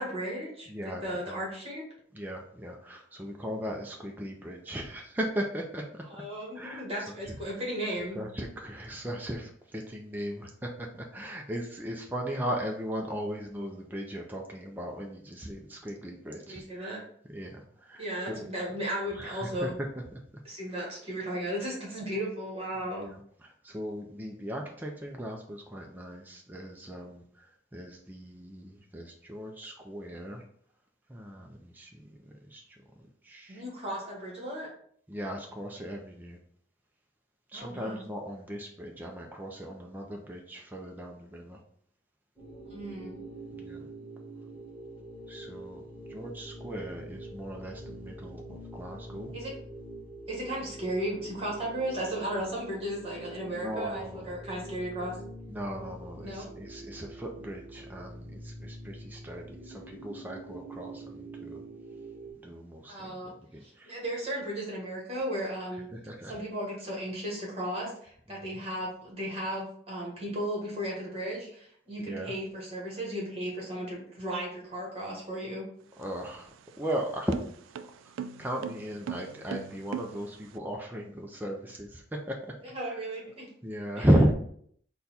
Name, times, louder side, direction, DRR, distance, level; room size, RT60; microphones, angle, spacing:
voice 1, 0.0-0.7 1.0-1.8 6.1-8.2 16.5-17.0 18.0-19.7 20.4-23.1 33.5-34.7 37.5-38.0 42.6-43.1 49.3-49.5 50.3-55.1 56.2-56.4 62.9-63.3 63.6-65.9 66.3-75.6 82.7-83.5 83.9-84.1, right 1 dB, 30° right, -3 dB, 1.3 m, -35 dB
voice 2, 0.7-1.4 2.1-6.2 6.5-7.4 8.1-17.0 17.3-18.5 19.1-20.2 22.8-30.4 31.1-32.8 33.2-33.6 35.1-36.4 37.5-41.6 43.5-43.9 45.3-49.3 53.5-54.4 55.5-61.6 62.4-64.0 65.9-66.3 68.3-68.6 72.0-72.3 76.0-77.4 78.0-78.1 78.4-82.4 82.9-83.0 83.6-84.3, equal, 10° right, 0 dB, 0.4 m, -36 dB
sound 1, 42.4-62.3, right 2 dB, 10° left, 1.7 m, -45 dB
sound 2, 75.8-80.6, right 7 dB, 90° right, 0.3 m, -41 dB
4.0 x 2.3 x 4.0 m, 0.62 s
head